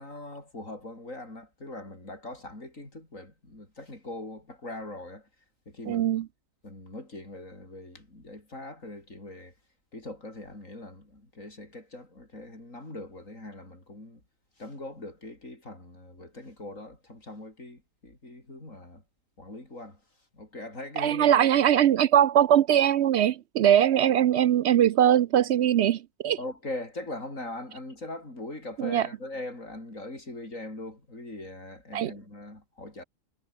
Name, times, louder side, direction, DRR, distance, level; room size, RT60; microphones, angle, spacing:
voice 1, 0.0-5.3 5.7-6.2 6.6-9.5 9.9-14.2 14.6-19.0 19.4-20.0 20.3-21.8 26.4-33.0, left 2 dB, 80° left, 7.1 m, -41 dB
voice 2, 5.9-6.2 21.0-26.4 28.8-29.1 31.9-32.1, right 10 dB, 65° right, 0.8 m, -21 dB
omnidirectional pair, 1.3 m